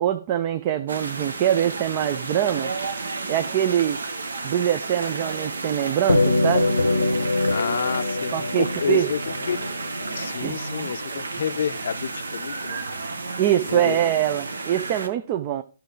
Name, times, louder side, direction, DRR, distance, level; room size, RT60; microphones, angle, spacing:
voice 1, 0.0-2.7 3.3-4.0 4.4-6.8 8.3-9.1 10.4-10.6 13.4-15.6, right 11 dB, 30° right, 0.5 m, -23 dB
sound 1, 0.9-15.1, right 3 dB, 65° right, 1.1 m, -32 dB
sound 2, 6.1-10.7, left 2 dB, 80° left, 0.8 m, -24 dB
voice 2, 7.5-8.3 8.6-9.6 10.2-12.8 13.7-14.0, left 7 dB, 50° left, 0.6 m, -29 dB
13.5 x 5.8 x 3.8 m
figure-of-eight pair, 130°, 0 cm